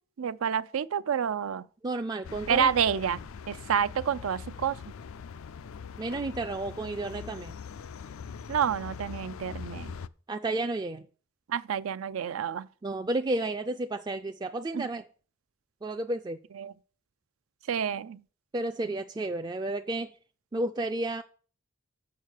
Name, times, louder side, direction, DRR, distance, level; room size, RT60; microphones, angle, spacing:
voice 1, 0.2-1.7 2.5-3.2 3.5-4.8 8.5-9.9 11.5-12.7 14.7-14.9 16.6-16.7 17.7-18.2, right 8 dB, 85° right, 0.4 m, -28 dB
voice 2, 1.8-3.0 6.0-7.6 10.3-11.1 12.8-15.1 15.8-16.4 18.5-20.1 20.5-21.2, right 2 dB, 20° right, 0.3 m, -32 dB
sound 1, 2.2-10.1, left 6 dB, 85° left, 0.4 m, -42 dB
6.8 x 6.5 x 6.4 m
head